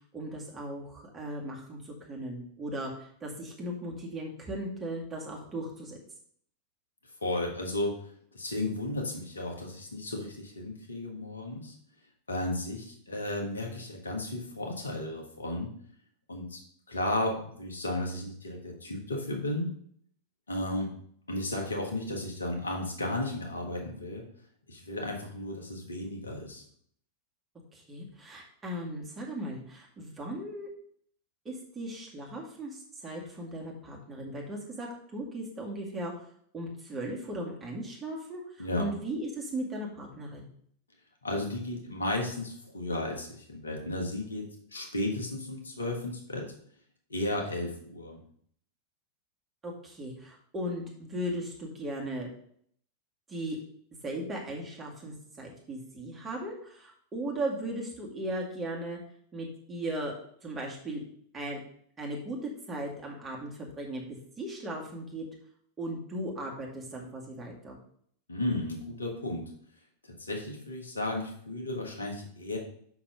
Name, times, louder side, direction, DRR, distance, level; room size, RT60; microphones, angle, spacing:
voice 1, 0.1-6.0 27.7-30.7 31.4-36.1 36.5-40.5 49.6-52.3 53.3-53.6 54.0-59.0 59.3-60.2 60.4-61.0 61.3-61.6 62.0-65.3 65.8-67.8, right 1 dB, 15° right, -2 dB, 2.2 m, -37 dB
voice 2, 7.2-7.9 8.3-11.7 12.3-15.7 16.3-16.6 16.9-19.7 20.5-20.9 21.3-24.2 24.7-26.6 38.6-38.9 41.2-44.5 44.7-46.5 47.1-48.2 68.3-69.4 70.2-72.6, left 1 dB, 75° left, 1 dB, 1.6 m, -34 dB
5.9 x 5.8 x 5.1 m, 0.63 s
figure-of-eight pair, 90°, 0 cm